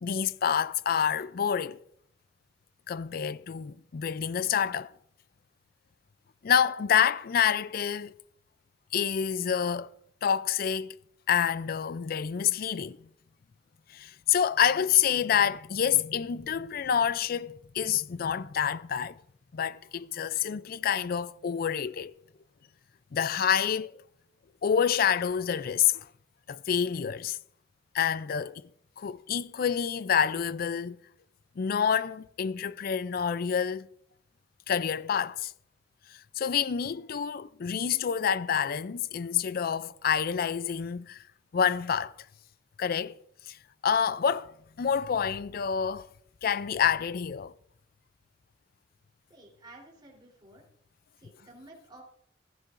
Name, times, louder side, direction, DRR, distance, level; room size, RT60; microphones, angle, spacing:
voice 1, 0.0-1.8 2.9-4.9 6.4-8.2 8.9-9.9 10.2-11.0 11.3-13.1 13.9-19.2 19.5-22.1 23.1-23.9 24.6-26.1 26.5-27.4 27.9-28.6 29.0-31.0 31.6-33.9 34.7-35.5 36.1-41.2 41.5-42.1 42.8-43.2 43.5-43.6 43.8-46.1 46.4-47.5, left 8 dB, 55° left, 0.4 m, -28 dB
voice 2, 49.3-50.6 51.2-52.0, right 1 dB, 25° right, 3.5 m, -52 dB
15.5 x 13.0 x 2.6 m
head